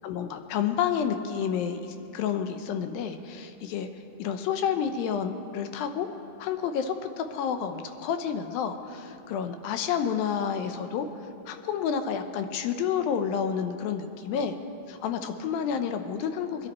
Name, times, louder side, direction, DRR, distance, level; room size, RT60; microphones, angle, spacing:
voice 1, 0.0-3.9 4.2-6.1 6.4-11.1 11.5-14.5 14.9-16.7, left 7 dB, 80° left, 7 dB, 2.4 m, -30 dB
23.0 x 10.5 x 4.2 m, 2.9 s
omnidirectional pair, 4.3 m